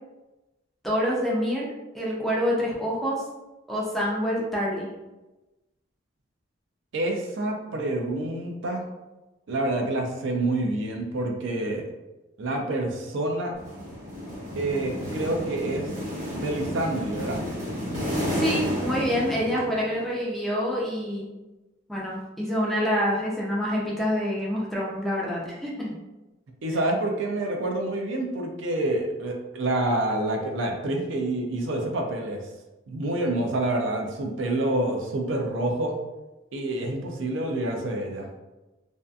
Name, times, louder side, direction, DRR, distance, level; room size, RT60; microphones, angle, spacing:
voice 1, 0.8-3.2 3.7-4.9 18.3-21.3 21.9-25.9, equal, ahead, -5 dB, 0.4 m, -27 dB
voice 2, 6.9-8.9 9.5-11.8 12.4-13.5 14.6-15.9 16.4-17.4 26.6-32.4 32.9-36.0 36.5-38.3, right 1 dB, 65° right, 2 dB, 0.4 m, -27 dB
sound 1, 13.5-20.0, equal, 40° right, 0.9 m, -31 dB
2.6 x 2.4 x 2.2 m, 1.1 s
head